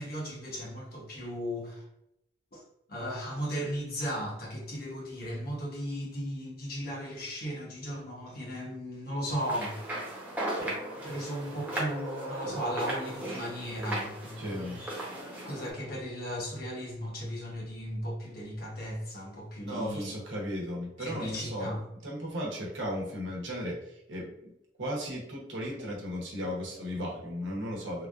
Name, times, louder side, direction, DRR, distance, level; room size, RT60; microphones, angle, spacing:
voice 1, 0.0-1.8 2.5-2.6 2.9-9.9 10.6-14.8 15.4-20.1 21.0-21.8, equal, 50° left, 1.0 m, -36 dB
sound 1, 9.4-15.7, right 1 dB, 10° right, 0.8 m, -37 dB
voice 2, 14.4-14.8 19.7-21.7 22.0-24.5 24.8-28.1, equal, 85° right, 0.9 m, -35 dB
3.3 x 2.4 x 2.4 m
head